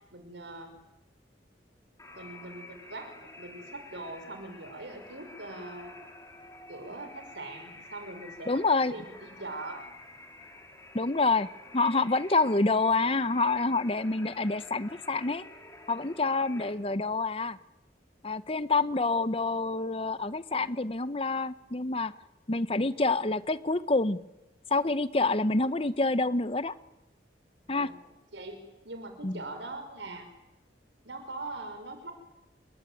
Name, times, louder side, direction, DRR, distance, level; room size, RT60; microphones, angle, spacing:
voice 1, 0.1-0.7 2.2-5.9 6.7-8.6 8.9-10.0 12.4-12.6 27.7-28.0 28.3-30.3 31.0-32.1, right 2 dB, 90° right, 7 dB, 6.0 m, -42 dB
sound 1, 2.0-16.7, left 2 dB, 15° left, 4.7 m, -50 dB
voice 2, 8.5-8.9 10.9-11.5 11.7-15.4 15.9-17.6 18.2-22.1 22.5-24.2 24.7-26.7 27.7-27.9 29.2-29.4, left 3 dB, 30° left, 14 dB, 0.9 m, -27 dB
28.5 x 21.5 x 9.3 m, 0.95 s
head